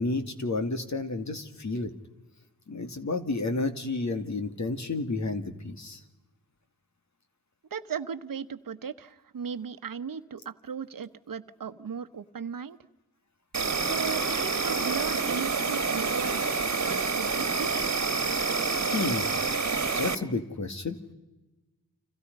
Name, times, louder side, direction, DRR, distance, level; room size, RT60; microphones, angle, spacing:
voice 1, 0.0-1.9 2.7-6.0 18.9-19.3 20.0-21.0, left 3 dB, 50° left, 7 dB, 2.6 m, -31 dB
voice 2, 7.7-12.8 13.7-17.7, right 6 dB, 60° right, 11 dB, 1.2 m, -37 dB
Insect, 13.5-20.2, right 4 dB, 45° right, 1.8 m, -28 dB
30.0 x 26.5 x 5.5 m, 1.1 s
cardioid pair, 75°, 37 cm